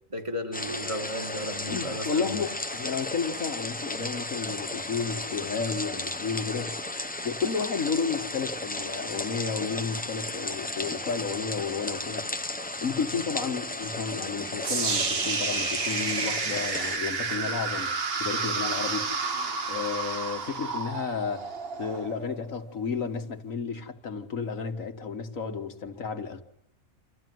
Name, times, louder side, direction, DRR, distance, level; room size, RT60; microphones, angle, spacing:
voice 1, 0.1-2.4, equal, 20° right, 2.0 m, -34 dB
sound 1, 0.5-17.0, left 2 dB, 10° left, 0.4 m, -35 dB
voice 2, 1.7-12.2 12.8-17.9 18.2-19.1 19.7-21.5 21.8-26.4, left 5 dB, 75° left, 2.0 m, -32 dB
sound 2, 14.6-22.7, right 4 dB, 50° right, 1.3 m, -30 dB
27.0 x 14.5 x 9.4 m
omnidirectional pair, 1.4 m